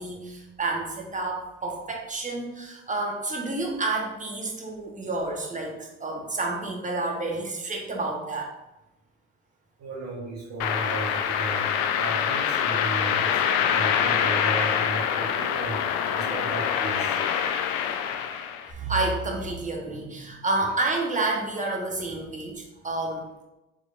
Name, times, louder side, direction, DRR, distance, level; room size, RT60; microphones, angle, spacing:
voice 1, 0.0-8.5 17.8-17.9 18.7-23.4, right 2 dB, 20° right, 0 dB, 1.0 m, -30 dB
voice 2, 9.8-17.2, right 2 dB, 50° right, -7 dB, 1.3 m, -35 dB
sound 1, 10.6-18.7, left 8 dB, 70° left, 0.5 m, -25 dB
3.6 x 3.5 x 2.4 m, 0.98 s
hypercardioid pair, 70°, 36 cm